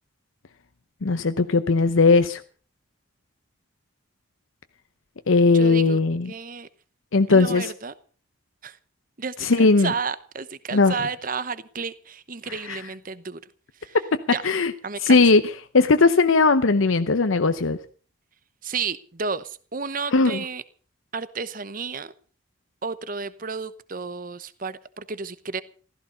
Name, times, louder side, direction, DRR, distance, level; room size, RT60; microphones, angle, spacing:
voice 1, 1.0-2.4 5.3-6.3 7.1-7.7 9.4-9.9 10.7-10.9 12.7-12.8 14.4-14.7 15.0-15.4 15.7-17.8 20.1-20.4, left 3 dB, 75° left, 10 dB, 0.8 m, -18 dB
voice 2, 5.5-6.0 6.3-6.7 7.3-7.9 8.6-8.8 9.2-13.4 13.8-14.0 14.3-14.5 14.8-15.2 18.6-20.6 21.1-22.1 22.8-25.6, right 5 dB, 40° right, 15 dB, 0.9 m, -32 dB
15.5 x 14.0 x 5.5 m, 0.42 s
head